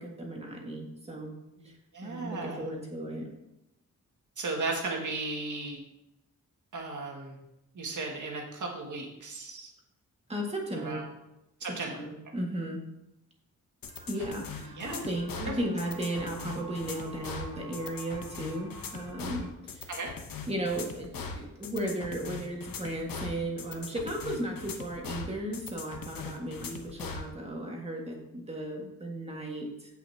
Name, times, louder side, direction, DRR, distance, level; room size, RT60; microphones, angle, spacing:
voice 1, 0.0-1.3 1.6-1.7 2.0-3.3 10.3-11.0 11.9-12.8 14.1-19.9 20.5-29.9, right 1 dB, 20° right, -1 dB, 1.8 m, -35 dB
voice 2, 1.6-2.7 4.4-5.8 6.7-7.4 7.7-9.7 10.7-11.1 11.6-12.0 14.8-14.9 15.3-15.5 19.9-20.1, right 3 dB, 65° right, 0 dB, 2.0 m, -36 dB
sound 1, 13.8-27.3, left 5 dB, 85° left, 1.1 m, -40 dB
sound 2, 13.9-19.5, right 2 dB, 80° right, 1.9 m, -51 dB
15.5 x 5.7 x 2.8 m, 0.88 s
wide cardioid pair, 160°, 33 cm